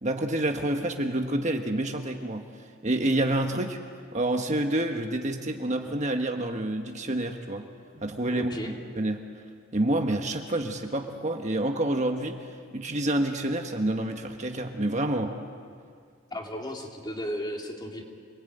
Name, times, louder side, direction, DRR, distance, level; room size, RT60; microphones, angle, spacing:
voice 1, 0.0-2.4 2.8-3.8 4.1-7.6 7.9-8.5 9.0-9.2 9.7-12.5 12.7-15.3, right 1 dB, 35° right, 4 dB, 1.4 m, -28 dB
voice 2, 8.3-8.8 16.3-18.0, equal, 20° left, 1 dB, 2.8 m, -35 dB
27.0 x 21.0 x 9.1 m, 2.1 s
head